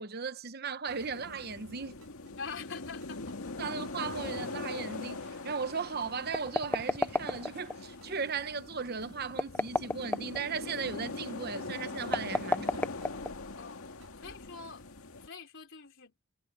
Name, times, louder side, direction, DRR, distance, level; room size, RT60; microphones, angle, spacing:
voice 1, 0.0-1.9 3.6-12.8, right 5 dB, 45° right, 0.9 m, -37 dB
sound 1, 0.9-15.3, left 3 dB, 80° left, 1.9 m, -42 dB
sound 2, 1.0-1.4 2.0-2.4 3.0-3.4 4.0-4.4 5.0-5.4 6.0-6.4 7.0-7.4 8.0-8.4 9.0-9.4 10.0-10.4 11.0-11.4 12.0-12.4 13.0-13.4 14.0-14.4, right 3 dB, 75° right, 5.0 m, -58 dB
voice 2, 2.4-3.4 3.6-3.7 13.6-13.9 14.1-14.9 15.2-16.1, left 5 dB, 60° left, 3.7 m, -44 dB
sound 3, 6.3-7.8 9.3-10.4 12.0-13.6, left 2 dB, 10° left, 0.5 m, -31 dB
head